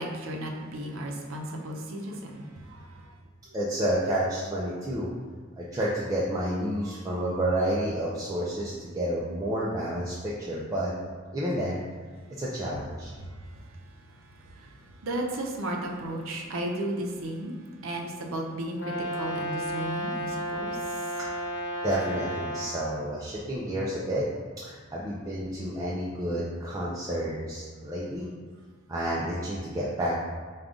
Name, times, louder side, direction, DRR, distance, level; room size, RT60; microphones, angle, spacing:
voice 1, 0.0-3.1 13.2-13.6 14.3-17.6 17.8-21.1, right 1 dB, 90° right, 1 dB, 0.6 m, -35 dB
voice 2, 3.5-5.1 5.6-10.9 11.3-11.8 12.3-13.1 21.2-21.3 21.8-24.2 24.6-28.3 28.9-30.1, right 1 dB, 15° right, -6 dB, 0.4 m, -30 dB
Brass instrument, 18.8-22.8, right 1 dB, 60° left, 0.6 m, -33 dB
5.0 x 2.3 x 3.6 m, 1.5 s
head